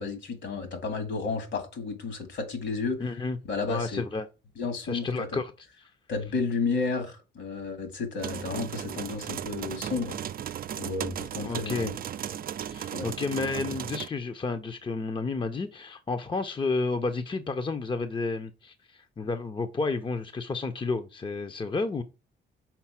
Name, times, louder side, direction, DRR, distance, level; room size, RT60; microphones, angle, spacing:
voice 1, 0.0-3.0 3.5-4.0 4.6-5.4 6.1-10.2 10.8-11.9 12.9-13.1, left 4 dB, 65° left, 2.0 m, -32 dB
voice 2, 3.0-3.4 3.7-4.3 4.8-5.5 5.8-5.9 11.4-11.9 12.7-22.0, left 3 dB, 25° left, 0.7 m, -31 dB
sound 1, 8.2-14.1, right 9 dB, 50° right, 0.5 m, -36 dB
5.9 x 4.1 x 5.7 m
cardioid pair, 90°, 20 cm